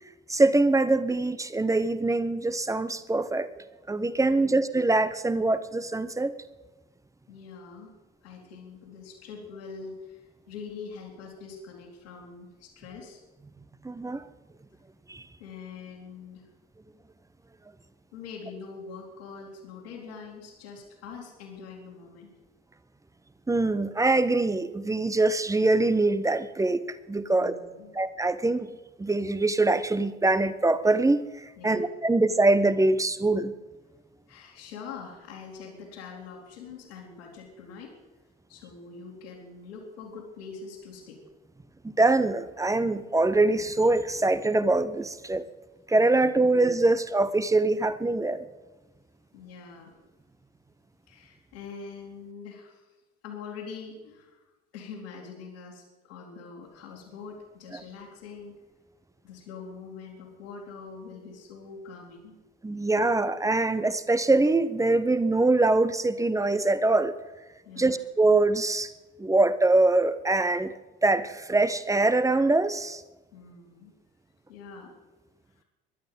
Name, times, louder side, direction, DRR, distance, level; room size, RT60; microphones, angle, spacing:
voice 1, 0.3-6.3 13.8-14.2 15.1-15.2 23.5-27.5 27.9-28.7 29.0-31.2 31.6-33.5 41.8-45.4 45.9-48.5 62.6-67.1 67.8-68.9 69.2-70.7 71.0-73.0, right 2 dB, 10° right, 14 dB, 0.9 m, -23 dB
voice 2, 4.2-4.5 7.3-7.9 8.2-13.2 15.4-16.5 18.1-22.3 27.3-28.0 31.6-31.8 34.3-37.9 38.5-41.2 46.4-46.5 49.3-50.0 51.1-52.9 53.2-54.5 54.7-58.5 59.2-62.3 62.8-62.9 67.6-68.0 73.3-73.9 74.5-74.9 75.6-75.7, left 5 dB, 65° left, -6 dB, 3.2 m, -44 dB
22.5 x 11.5 x 5.5 m, 1.1 s
figure-of-eight pair, 65°, 34 cm